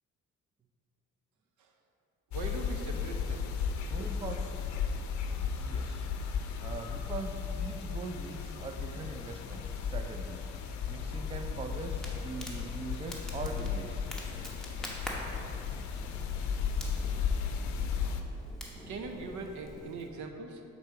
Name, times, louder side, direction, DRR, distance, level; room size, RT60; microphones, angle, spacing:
sound 1, 2.3-18.2, left 6 dB, 70° left, 0.6 m, -35 dB
voice 1, 2.3-3.5 18.9-20.6, right 3 dB, 75° right, 4 dB, 0.7 m, -41 dB
voice 2, 3.9-4.5 5.6-6.1 6.6-9.6 9.9-10.5 10.9-14.0, right 3 dB, 20° right, 5 dB, 0.4 m, -41 dB
Crackle, 11.4-20.1, left 1 dB, ahead, 1.0 m, -45 dB
7.1 x 3.9 x 4.7 m, 2.7 s
cardioid pair, 90°, 30 cm